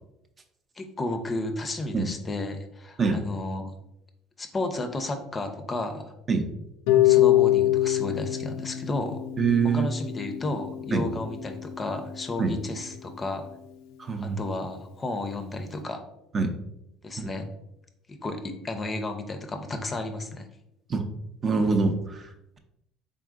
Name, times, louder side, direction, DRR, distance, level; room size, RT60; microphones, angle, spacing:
voice 1, 0.8-3.7 4.4-6.1 6.9-9.2 9.6-13.4 14.2-16.0 17.0-17.5 18.2-20.5, left 2 dB, 25° left, 6 dB, 0.5 m, -32 dB
Harp, 6.9-12.9, left 14 dB, 80° left, 0.4 m, -25 dB
voice 2, 9.4-9.9 10.9-11.0 12.4-12.5 14.0-14.4 16.3-16.5 20.9-21.1 21.4-22.2, right 4 dB, 35° right, 5 dB, 0.5 m, -24 dB
3.8 x 3.6 x 2.4 m, 0.84 s
supercardioid pair, 90°, 0 cm